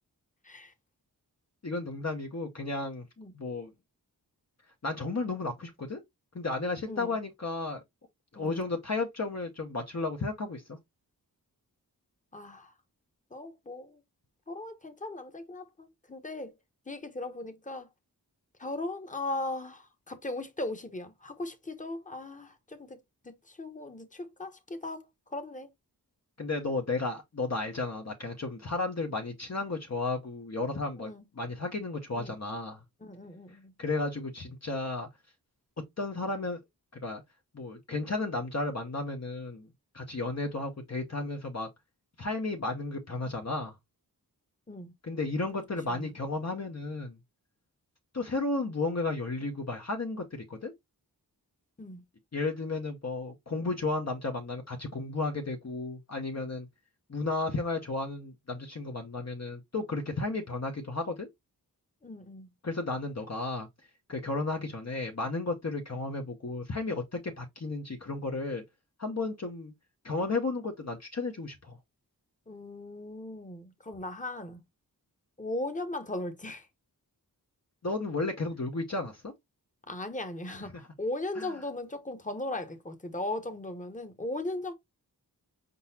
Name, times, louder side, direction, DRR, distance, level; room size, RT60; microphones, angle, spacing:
voice 1, 1.6-3.0 3.3-3.7 4.8-6.0 6.3-7.8 8.3-10.8 26.4-32.8 33.8-35.1 36.0-36.6 37.0-37.2 37.5-39.7 39.9-41.7 42.2-43.7 45.0-47.2 48.1-50.7 52.3-56.7 57.1-61.3 62.6-63.7 64.1-68.6 69.0-69.7 70.0-71.8 77.8-79.3 81.4-81.5, left 3 dB, 40° left, 0.9 m, -33 dB
voice 2, 8.4-8.7 12.3-12.7 13.3-14.0 14.5-16.5 16.9-17.9 18.6-23.0 23.2-25.7 31.0-31.3 32.2-32.4 33.0-33.7 44.7-44.9 45.9-46.1 51.8-52.0 62.0-62.5 72.5-74.6 75.4-76.7 79.9-84.7, left 2 dB, 20° left, 1.0 m, -38 dB
4.7 x 3.9 x 2.8 m
wide cardioid pair, 60°, 39 cm